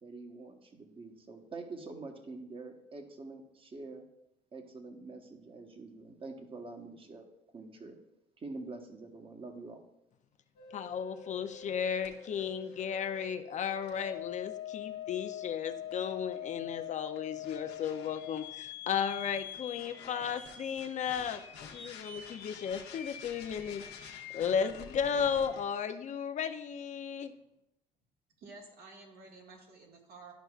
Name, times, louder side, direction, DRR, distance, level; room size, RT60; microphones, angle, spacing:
voice 1, 0.0-4.1 4.5-7.3 7.5-8.0 8.4-9.8, right 3 dB, 30° right, 4 dB, 1.1 m, -46 dB
sound 1, 10.6-25.6, left 10 dB, 85° left, 0.9 m, -45 dB
voice 2, 10.7-21.4 21.7-23.8 24.3-27.3, left 7 dB, 45° left, 9 dB, 0.5 m, -34 dB
voice 3, 28.4-30.3, right 3 dB, 65° right, 0 dB, 1.6 m, -52 dB
11.0 x 5.6 x 2.4 m, 0.83 s
cardioid pair, 110°, 17 cm